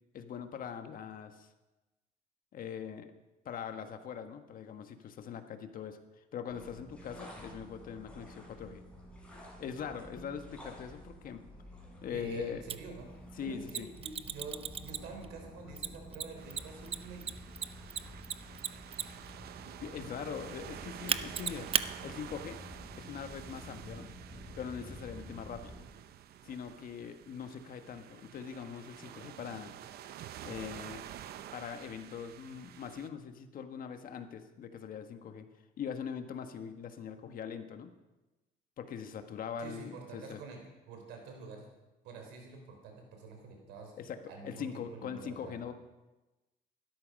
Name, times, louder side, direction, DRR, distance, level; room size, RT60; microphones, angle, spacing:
voice 1, 0.1-1.5 2.5-3.1 3.4-8.8 9.6-11.4 12.0-12.6 13.4-13.9 19.8-21.7 22.0-22.6 23.0-24.1 24.6-25.7 26.4-29.7 30.4-31.0 31.5-35.5 35.8-37.9 38.8-40.4 44.0-45.7, left 7 dB, 55° left, 8 dB, 1.5 m, -42 dB
sound 1, 6.5-25.8, equal, 5° left, 6.7 m, -50 dB
voice 2, 12.1-13.1 13.4-17.2 39.6-41.7 42.0-43.9 44.3-45.6, right 4 dB, 90° right, 2 dB, 3.9 m, -47 dB
Mechanisms, 12.7-12.8 13.7-15.3 15.8-19.3 21.1-21.9, right 7 dB, 35° right, 0.7 m, -34 dB
sound 2, 16.4-33.1, right 11 dB, 65° right, 0.8 m, -49 dB
16.5 x 12.5 x 5.3 m, 1.1 s
cardioid pair, 110°, 17 cm